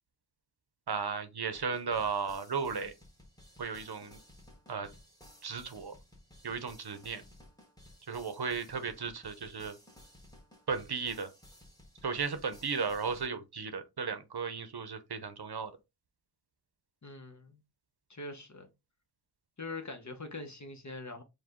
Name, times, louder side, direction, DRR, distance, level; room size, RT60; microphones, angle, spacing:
voice 1, 0.9-2.9 3.6-4.2 4.7-4.9 5.4-5.9 6.4-7.2 8.1-9.8 10.7-11.3 12.0-15.7, right 5 dB, 65° right, 0.7 m, -35 dB
sound 1, 1.5-13.3, left 1 dB, 10° left, 1.3 m, -57 dB
voice 2, 17.0-17.6 18.1-18.7 19.6-21.2, left 2 dB, 40° left, 0.9 m, -43 dB
4.8 x 2.2 x 3.6 m
wide cardioid pair, 50°, 43 cm